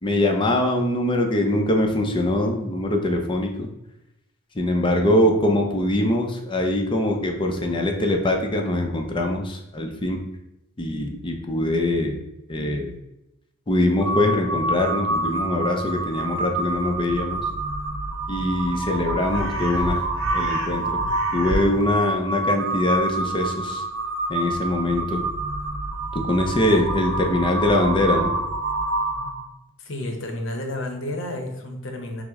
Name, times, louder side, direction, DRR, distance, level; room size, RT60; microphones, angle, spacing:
voice 1, 0.0-3.7 4.5-10.2 10.8-12.2 12.5-12.9 13.7-17.5 18.3-20.0 20.3-21.0 21.3-23.8 24.3-25.2 26.1-28.3, left 1 dB, 25° left, 2 dB, 0.6 m, -23 dB
Crow, 14.0-29.5, right 2 dB, 75° right, 0.7 m, -27 dB
voice 2, 29.8-32.2, left 1 dB, 65° left, 4 dB, 0.8 m, -31 dB
5.9 x 2.1 x 3.6 m, 0.87 s
head